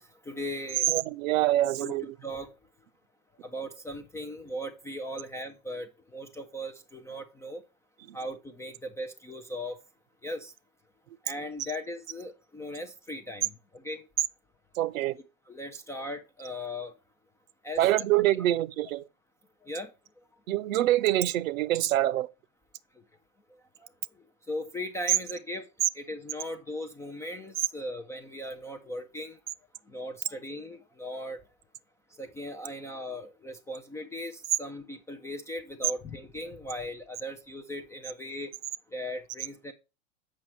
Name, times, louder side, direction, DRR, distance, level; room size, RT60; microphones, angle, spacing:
voice 1, 0.0-0.9 1.8-1.9 2.2-2.5 3.4-7.6 8.1-9.8 10.2-10.5 11.2-14.0 15.5-16.9 17.6-18.0 19.6-19.9 23.5-23.9 24.5-25.7 25.9-29.4 29.9-31.4 32.2-38.5 38.9-39.7, left 1 dB, 10° left, 0.3 m, -38 dB
voice 2, 0.9-2.1 8.1-8.2 14.8-15.2 17.8-19.0 20.5-22.3, right 14 dB, 75° right, 0.7 m, -25 dB
7.5 x 5.6 x 4.4 m
hypercardioid pair, 115°, 41 cm